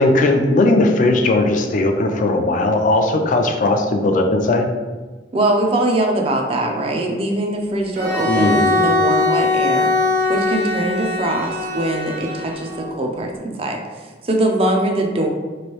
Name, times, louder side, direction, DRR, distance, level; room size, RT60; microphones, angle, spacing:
voice 1, 0.0-4.7 8.3-8.8, left 2 dB, 45° left, 4 dB, 0.4 m, -17 dB
voice 2, 5.3-9.9 10.3-13.8 14.2-15.3, right 1 dB, 35° right, 2 dB, 0.4 m, -21 dB
Bowed string instrument, 7.9-12.9, left 3 dB, 50° right, 0.8 m, -21 dB
3.1 x 2.6 x 2.9 m, 1.3 s
head